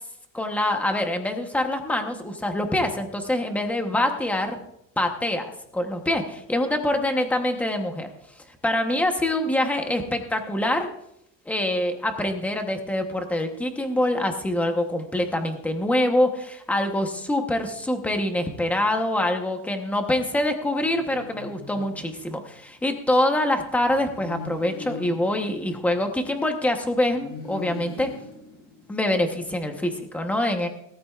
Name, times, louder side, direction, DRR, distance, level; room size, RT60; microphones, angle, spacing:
voice 1, 0.3-4.6 5.0-8.1 8.6-10.9 11.5-28.1 28.9-30.7, left 1 dB, 5° left, 5 dB, 0.9 m, -25 dB
sound 1, 20.6-22.7 23.9-26.6 27.1-29.3, left 4 dB, 35° left, 3.0 m, -41 dB
18.5 x 13.5 x 2.4 m, 0.77 s
cardioid pair, 175°, 39 cm